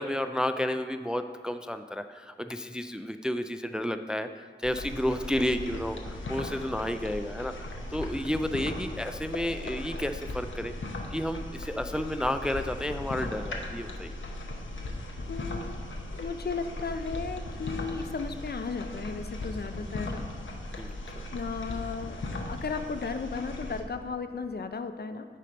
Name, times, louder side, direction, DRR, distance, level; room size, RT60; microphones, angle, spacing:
voice 1, 0.0-10.7 11.1-14.1 20.8-20.9, left 1 dB, 5° right, 8 dB, 0.3 m, -31 dB
sound 1, 4.6-23.8, left 2 dB, 80° left, 0.8 m, -38 dB
voice 2, 15.3-15.8 16.1-20.2 21.3-25.3, left 5 dB, 55° left, 9 dB, 0.5 m, -35 dB
8.2 x 4.3 x 5.2 m, 2.1 s
cardioid pair, 45°, 20 cm